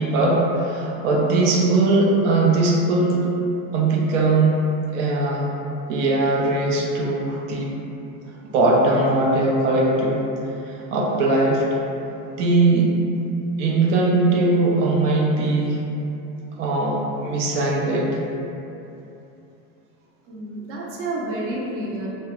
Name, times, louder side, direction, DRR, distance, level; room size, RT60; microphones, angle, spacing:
voice 1, 0.0-3.3 3.7-4.7 4.9-5.5 5.9-7.7 8.5-10.2 10.9-11.6 12.3-12.9 13.6-15.8 16.6-18.2, right 2 dB, 90° right, -3 dB, 0.6 m, -20 dB
voice 2, 20.2-22.1, right 1 dB, 40° right, -4 dB, 0.5 m, -29 dB
2.3 x 2.1 x 2.9 m, 2.8 s
supercardioid pair, 125°, 36 cm